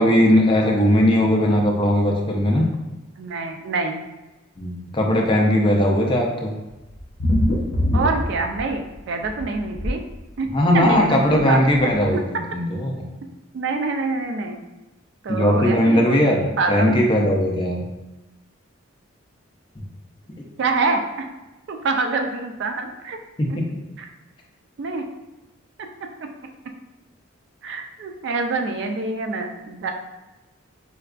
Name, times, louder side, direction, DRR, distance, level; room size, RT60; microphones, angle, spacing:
voice 1, 0.0-2.6 4.6-6.5 10.5-12.2 12.5-13.0 15.3-17.8 23.4-23.6, equal, 25° left, 0 dB, 0.4 m, -18 dB
voice 2, 3.2-4.0 7.9-10.0 10.4-10.5 10.7-12.2 13.5-14.6 15.2-16.2 16.6-17.0 20.6-21.0 21.7-23.2 23.5-23.6 24.0-24.1 24.8-25.1 25.8-25.9 27.6-29.9, right 3 dB, 55° right, 5 dB, 0.3 m, -26 dB
sound 1, 7.0-9.0 9.3-9.9 10.9-11.0 11.4-11.5 11.7-11.8, left 1 dB, 55° left, 0.7 m, -22 dB
4.4 x 2.2 x 2.4 m, 1.1 s
head